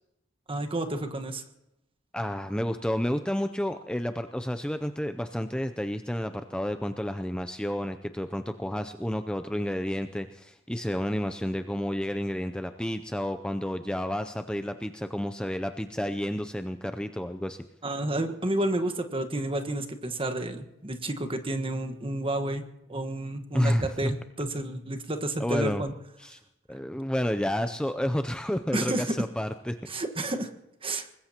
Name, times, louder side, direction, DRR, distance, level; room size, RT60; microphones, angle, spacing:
voice 1, 0.5-1.4 17.8-22.6 22.9-25.9 28.7-29.1 29.9-30.5 30.8-31.1, right 1 dB, 25° right, 7 dB, 1.4 m, -30 dB
voice 2, 2.1-17.6 23.5-24.1 25.4-25.8 26.2-26.4 26.7-29.8, equal, 5° left, 8 dB, 0.5 m, -30 dB
24.5 x 20.5 x 2.9 m, 0.88 s
head